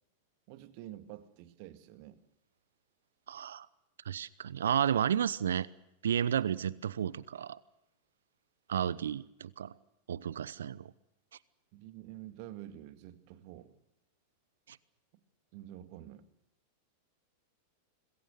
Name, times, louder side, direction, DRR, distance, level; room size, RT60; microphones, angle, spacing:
voice 1, 0.5-2.2 11.7-13.7 15.5-16.2, right 13 dB, 45° right, 1.9 m, -48 dB
voice 2, 3.3-3.7 4.0-5.7 6.0-7.6 8.7-9.7 10.1-10.9 14.7-14.8, right 9 dB, 65° right, 0.8 m, -32 dB
26.5 x 21.5 x 6.7 m
figure-of-eight pair, 90°, 0 cm